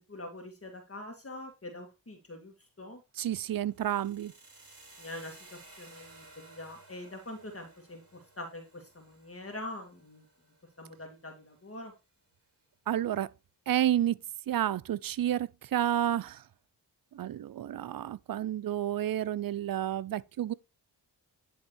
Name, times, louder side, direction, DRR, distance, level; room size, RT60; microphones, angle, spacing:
voice 1, 0.1-3.0 5.0-10.2 10.8-11.9, left 1 dB, 35° left, 2.0 m, -44 dB
voice 2, 3.2-4.3 12.9-13.3 13.7-14.2 14.5-16.4 17.1-20.5, right 11 dB, 55° right, 0.5 m, -30 dB
sound 1, 3.7-11.7, right 2 dB, 35° right, 3.4 m, -57 dB
10.0 x 3.5 x 4.5 m
cardioid pair, 55°, 41 cm